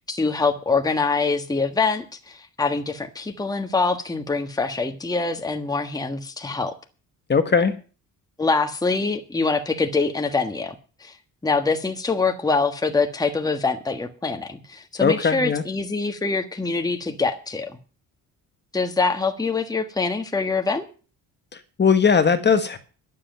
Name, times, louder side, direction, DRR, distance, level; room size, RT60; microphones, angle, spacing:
voice 1, 0.1-6.7 8.4-10.7 11.0-11.1 11.4-17.8 18.7-20.8, left 4 dB, 10° left, 6 dB, 1.5 m, -24 dB
voice 2, 7.3-7.7 15.0-15.6 21.8-22.8, left 6 dB, 30° left, 9 dB, 1.5 m, -18 dB
11.5 x 7.8 x 8.9 m, 0.37 s
cardioid pair, 115°, 34 cm